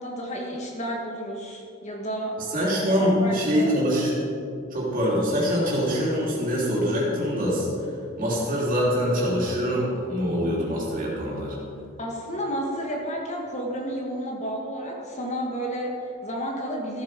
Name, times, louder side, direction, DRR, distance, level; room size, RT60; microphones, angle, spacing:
voice 1, 0.0-2.5 2.9-3.7 12.0-17.0, equal, 35° left, 0 dB, 1.5 m, -31 dB
voice 2, 2.5-4.1 4.7-7.9 8.2-11.6, equal, 40° right, -5 dB, 3.3 m, -24 dB
14.5 x 8.2 x 4.9 m, 2.6 s
head